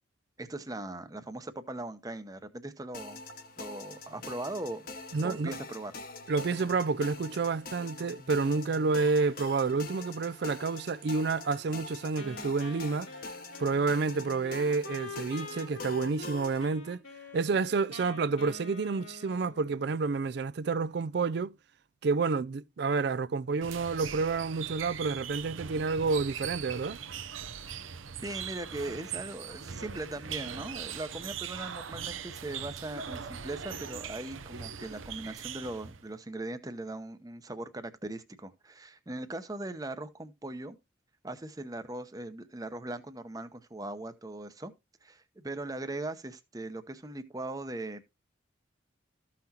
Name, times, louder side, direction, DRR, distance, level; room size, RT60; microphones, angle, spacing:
voice 1, 0.4-3.2 3.6-4.8 5.2-5.9 28.2-40.8 41.2-44.7 45.0-48.1, right 2 dB, 20° right, 0.7 m, -39 dB
sound 1, 2.9-16.7, left 3 dB, 45° left, 1.0 m, -45 dB
voice 2, 5.1-5.5 6.3-13.1 13.6-17.0 17.3-21.5 22.0-27.0, right 4 dB, 55° right, 0.4 m, -29 dB
Wind instrument woodwind instrument, 12.2-20.1, left 3 dB, 85° left, 2.8 m, -45 dB
sound 2, 23.6-36.1, right 7 dB, 85° right, 0.8 m, -40 dB
14.0 x 5.8 x 2.8 m
head